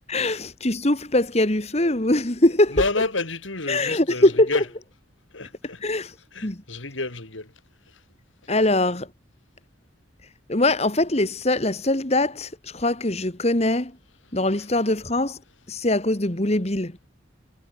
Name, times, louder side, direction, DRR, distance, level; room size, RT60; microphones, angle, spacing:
voice 1, 0.1-2.8 3.7-4.5 5.8-6.1 6.4-6.6 8.5-9.1 10.5-13.9 14.3-15.4 15.7-17.0, left 1 dB, 35° left, 2.0 m, -22 dB
voice 2, 2.7-4.6 5.3-5.8 6.3-7.5, left 3 dB, 80° left, 3.5 m, -29 dB
head